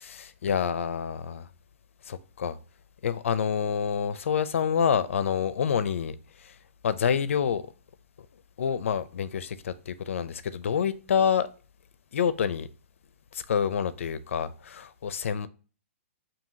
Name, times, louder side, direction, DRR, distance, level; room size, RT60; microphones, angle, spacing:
voice 1, 0.0-1.5 2.0-2.6 3.0-6.6 6.8-7.6 8.6-11.5 12.1-12.7 13.3-15.5, left 7 dB, 70° left, 0.4 m, -27 dB
5.5 x 2.7 x 2.6 m
hypercardioid pair, 170°, 7 cm